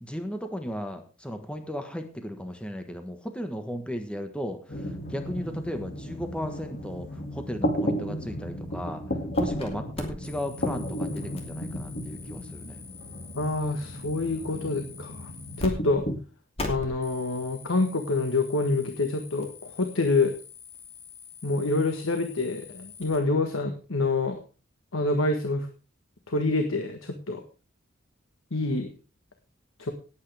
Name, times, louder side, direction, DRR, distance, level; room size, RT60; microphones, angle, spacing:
voice 1, 0.0-9.0 9.4-12.8, equal, 5° left, 6 dB, 1.4 m, -35 dB
sound 1, 4.7-16.2, equal, 50° left, 2.4 m, -34 dB
sound 2, 9.3-9.7 9.9-15.7 15.9-16.1 16.6-23.2, left 3 dB, 30° left, 2.8 m, -43 dB
voice 2, 13.3-15.3 15.6-16.0 16.7-20.3 21.4-24.4 24.9-25.7 26.3-27.4 28.5-28.9 29.8-29.9, left 2 dB, 85° left, 5 dB, 1.5 m, -27 dB
18.5 x 8.6 x 3.5 m, 0.35 s
head